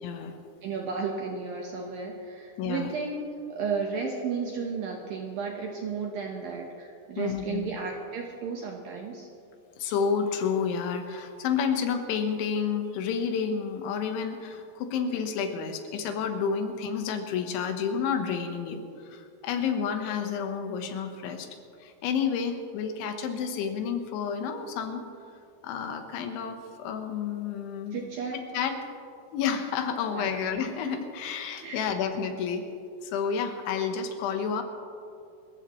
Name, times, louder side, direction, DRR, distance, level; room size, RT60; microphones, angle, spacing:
voice 1, 0.0-0.4 2.6-2.9 7.2-7.7 9.8-21.5 21.8-25.0 25.6-28.0 28.3-28.7 29.3-32.6 33.0-34.6, left 6 dB, 80° left, 5 dB, 3.5 m, -30 dB
voice 2, 0.6-3.2 3.5-9.3 27.9-28.4 30.1-30.4 31.6-31.9, right 5 dB, 70° right, 0 dB, 2.3 m, -33 dB
28.0 x 14.5 x 3.2 m, 2.5 s
omnidirectional pair, 5.5 m